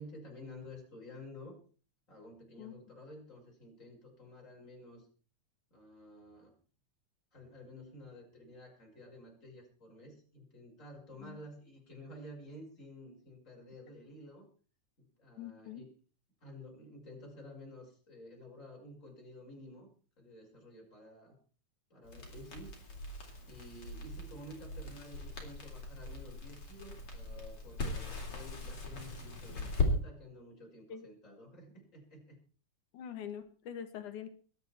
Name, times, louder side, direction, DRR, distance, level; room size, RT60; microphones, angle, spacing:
voice 1, 0.0-1.6 2.1-5.1 5.7-6.6 7.3-14.5 15.0-15.9 16.4-19.9 20.2-21.3 21.9-22.7 23.5-32.4, left 1 dB, 25° left, 0 dB, 6.5 m, -51 dB
voice 2, 15.4-15.8 30.9-31.1 32.9-34.3, left 9 dB, 75° left, 9 dB, 3.1 m, -44 dB
Crackle, 22.1-29.9, left 3 dB, 45° left, 4.7 m, -39 dB
21.5 x 11.5 x 4.5 m, 0.39 s
omnidirectional pair, 3.5 m